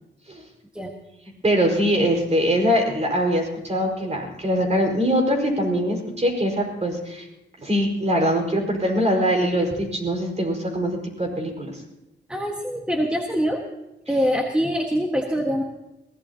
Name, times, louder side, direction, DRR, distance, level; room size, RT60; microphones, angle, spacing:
voice 1, 1.4-7.3 7.6-11.7, equal, 35° right, 1 dB, 5.0 m, -22 dB
voice 2, 12.3-13.6 14.1-15.6, equal, 5° right, 1 dB, 1.6 m, -24 dB
22.0 x 17.0 x 2.9 m, 0.93 s
cardioid pair, 80°, 19 cm